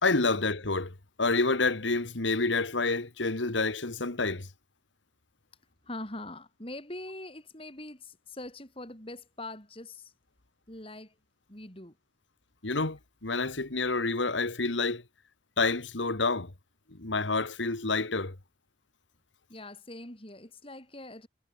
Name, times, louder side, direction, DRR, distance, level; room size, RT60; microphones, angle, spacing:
voice 1, 0.0-4.5 12.6-15.0 15.6-16.5 16.9-18.4, left 3 dB, 90° left, 2.0 m, -28 dB
voice 2, 5.8-10.1 10.7-11.2 11.5-12.0 19.5-21.3, left 2 dB, 30° left, 4.6 m, -43 dB
head